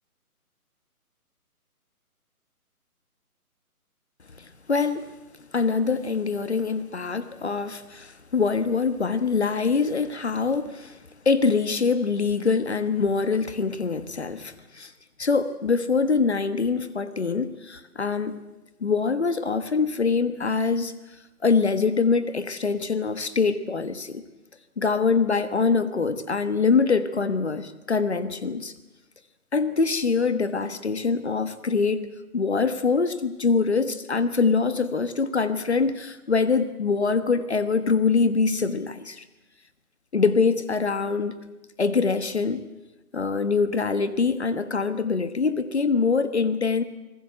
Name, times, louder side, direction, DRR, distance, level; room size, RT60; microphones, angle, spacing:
voice 1, 4.4-5.1 5.5-11.0 11.2-14.9 15.2-18.4 18.8-20.9 21.4-24.2 24.8-28.7 29.5-32.1 32.3-39.2 40.1-41.4 41.8-42.6 43.1-46.8, left 4 dB, 45° left, 12 dB, 1.4 m, -24 dB
26.0 x 20.5 x 7.7 m, 1.0 s
hypercardioid pair, 175°, 46 cm